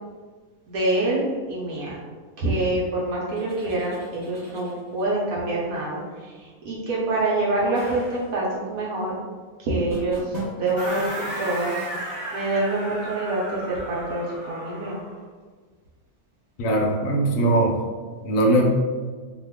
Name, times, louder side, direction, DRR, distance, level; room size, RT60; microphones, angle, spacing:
voice 1, 0.7-1.9 2.4-9.1 9.6-15.0, right 2 dB, 75° right, -6 dB, 1.1 m, -26 dB
sound 1, 3.3-5.2 7.7-8.4 9.9-11.1, right 2 dB, 40° right, 0.7 m, -39 dB
sound 2, 10.8-15.2, right 1 dB, 15° left, 0.4 m, -34 dB
voice 2, 16.6-17.8 18.2-18.6, right 1 dB, 70° left, 0 dB, 1.0 m, -20 dB
2.8 x 2.3 x 3.4 m, 1.5 s
omnidirectional pair, 1.6 m